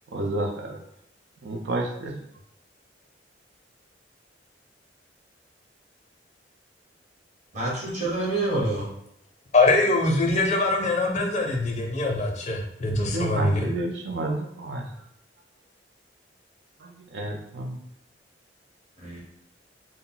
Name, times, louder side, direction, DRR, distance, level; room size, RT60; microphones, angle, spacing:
voice 1, 0.1-0.8 1.4-2.2 13.1-14.9 16.8-17.8, right 2 dB, 70° right, 1 dB, 0.4 m, -30 dB
voice 2, 7.5-8.9 19.0-19.2, right 2 dB, 40° right, -4 dB, 1.0 m, -27 dB
voice 3, 9.5-13.7, left 2 dB, 40° left, 1 dB, 0.5 m, -23 dB
2.3 x 2.1 x 3.7 m, 0.77 s
head